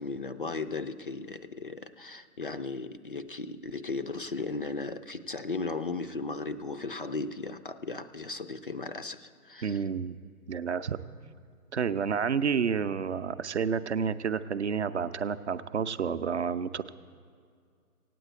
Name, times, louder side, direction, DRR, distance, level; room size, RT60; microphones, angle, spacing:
voice 1, 0.0-9.8, left 3 dB, 40° left, 9 dB, 0.4 m, -36 dB
voice 2, 9.6-10.2 10.5-11.0 11.7-16.9, right 6 dB, 50° right, 12 dB, 0.6 m, -30 dB
16.0 x 9.2 x 8.1 m, 2.2 s
figure-of-eight pair, 125°, 45 cm